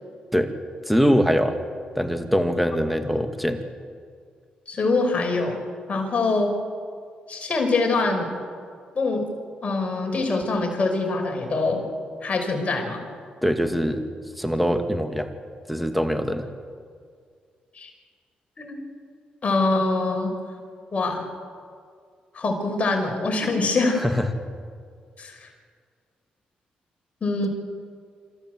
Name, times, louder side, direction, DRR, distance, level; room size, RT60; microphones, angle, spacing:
voice 1, 0.9-1.6 1.9-3.6 13.4-14.0 14.4-15.3 15.7-16.5 23.9-24.3, equal, ahead, 7 dB, 2.3 m, -22 dB
voice 2, 4.7-5.6 5.9-6.5 7.3-8.3 8.9-9.2 9.6-11.8 12.2-13.0 17.8-17.9 18.6-18.8 19.4-20.3 20.9-21.3 22.3-24.0 25.2-25.5 27.2-27.5, left 3 dB, 45° left, 2 dB, 5.6 m, -24 dB
26.5 x 14.0 x 8.1 m, 2.1 s
supercardioid pair, 60°, 3 cm